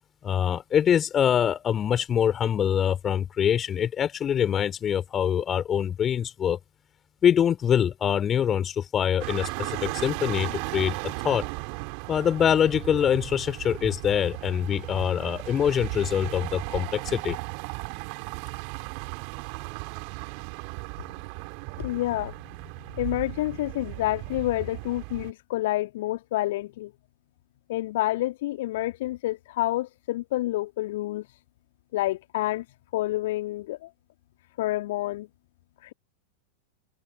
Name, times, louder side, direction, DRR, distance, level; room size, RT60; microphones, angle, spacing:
voice 1, 0.2-6.6 7.2-10.9 11.2-11.4 12.1-17.4, left 9 dB, 25° left, 3.2 m, -24 dB
sound 1, 9.2-25.3, right 40 dB or more, 45° right, 3.9 m, -36 dB
voice 2, 21.8-22.3 23.0-26.9 27.7-31.2 31.9-32.6 32.9-33.9 34.6-35.3, left 16 dB, 55° left, 1.7 m, -28 dB
figure-of-eight pair, 90°, 0 cm